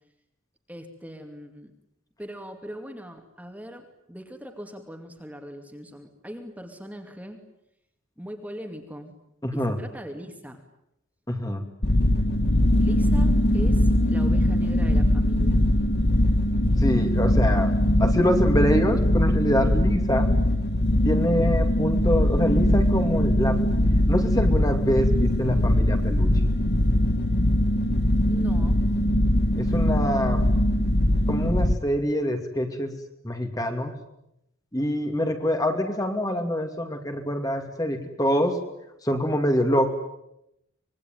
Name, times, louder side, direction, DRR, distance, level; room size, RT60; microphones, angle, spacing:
voice 1, 0.7-1.7 2.2-7.4 8.2-9.1 9.5-10.6 12.8-15.6 28.3-28.9, equal, 5° right, 4 dB, 2.6 m, -40 dB
voice 2, 9.4-9.8 11.3-11.6 16.8-17.7 18.0-20.3 21.0-23.6 24.1-26.3 29.6-30.4 31.3-32.9 33.2-33.9 34.7-38.6 39.0-39.9, equal, 15° left, 5 dB, 2.7 m, -25 dB
sound 1, 11.8-31.8, left 1 dB, 50° left, 1.6 m, -21 dB
25.5 x 22.5 x 9.4 m, 0.82 s
head